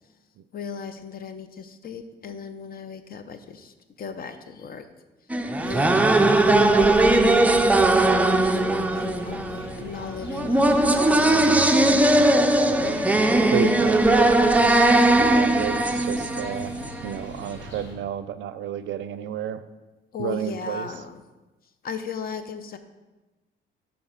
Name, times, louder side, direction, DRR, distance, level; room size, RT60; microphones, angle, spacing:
voice 1, 0.5-4.9 5.6-7.6 7.9-12.3 13.5-13.7 20.1-21.2 21.8-22.8, left 6 dB, 50° left, 10 dB, 0.6 m, -37 dB
sound 1, 5.3-17.2, right 2 dB, 5° right, 0.4 m, -19 dB
sound 2, 5.6-17.9, left 1 dB, 65° left, 2.1 m, -39 dB
voice 2, 13.5-16.7 17.0-19.6 20.2-20.9, right 9 dB, 70° right, 13 dB, 0.4 m, -31 dB
5.7 x 4.3 x 5.6 m, 1.1 s
cardioid pair, 90°, 20 cm